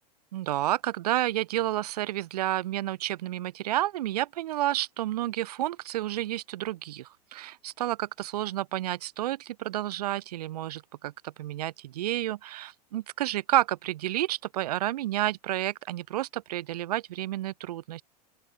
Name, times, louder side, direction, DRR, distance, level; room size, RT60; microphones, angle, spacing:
voice 1, 0.3-18.0, right 14 dB, 65° right, 2.0 m, -30 dB
open air
hypercardioid pair, 95°, 21 cm